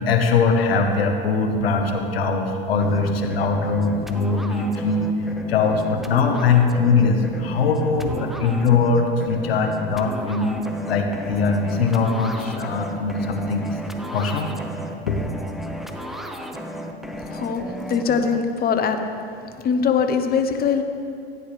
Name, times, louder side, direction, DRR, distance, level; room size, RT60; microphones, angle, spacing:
voice 1, 0.1-5.1 5.5-10.6 10.9-13.7 14.1-14.5 15.1-15.2, left 4 dB, 90° left, 5 dB, 1.2 m, -21 dB
sound 1, 2.8-18.4, equal, ahead, 0.7 m, -34 dB
voice 2, 17.3-19.1 19.4-20.8, left 6 dB, 30° left, 7 dB, 0.9 m, -22 dB
15.5 x 9.5 x 3.3 m, 2.5 s
hypercardioid pair, 100°, 29 cm